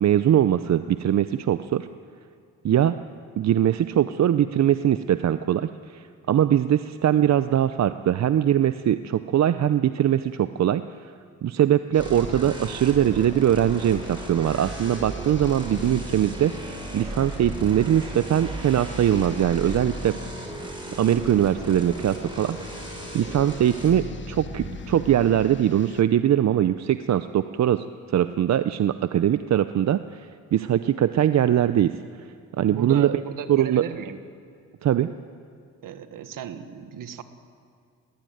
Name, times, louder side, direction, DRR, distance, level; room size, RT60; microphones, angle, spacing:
voice 1, 0.0-1.9 2.6-3.0 3.4-10.8 11.4-20.2 21.0-32.0 32.6-33.1 33.5-33.8 34.8-35.1, right 10 dB, 55° right, 12 dB, 0.6 m, -22 dB
sound 1, 11.9-26.0, left 5 dB, 35° left, 1.0 m, -44 dB
sound 2, 12.0-25.2, right 1 dB, 15° right, 5.8 m, -36 dB
voice 2, 32.7-34.2 35.8-37.2, right 8 dB, 70° right, 10 dB, 1.4 m, -35 dB
20.0 x 16.0 x 9.3 m, 2.3 s
cardioid pair, 80°, 34 cm